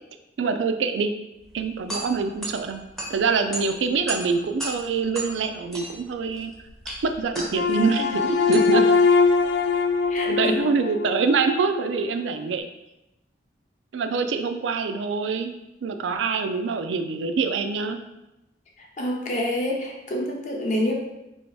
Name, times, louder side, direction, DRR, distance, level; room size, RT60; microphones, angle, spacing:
voice 1, 0.4-1.1 1.5-2.8 3.1-6.5 7.0-8.9 10.2-12.6 13.9-15.5 15.8-18.0, right 4 dB, 85° right, 7 dB, 0.4 m, -25 dB
sound 1, 1.4-10.6, right 1 dB, ahead, 0.6 m, -37 dB
sound 2, 7.5-11.8, left 4 dB, 80° left, 0.4 m, -22 dB
voice 2, 10.1-10.6 18.8-20.9, left 1 dB, 40° left, 0 dB, 0.7 m, -27 dB
3.1 x 2.8 x 4.5 m, 0.91 s
head